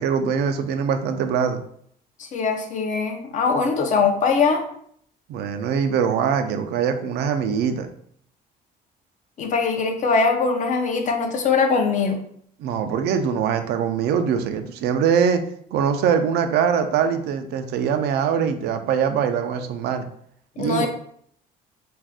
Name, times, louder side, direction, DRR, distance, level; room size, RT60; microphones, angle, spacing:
voice 1, 0.0-1.6 5.3-7.9 12.6-15.4 15.7-20.1 20.6-20.9, right 7 dB, 75° right, 8 dB, 0.4 m, -22 dB
voice 2, 2.2-4.6 9.4-12.2 20.6-20.9, left 4 dB, 45° left, 5 dB, 0.5 m, -21 dB
2.5 x 2.3 x 3.4 m, 0.65 s
cardioid pair, 110°, 17 cm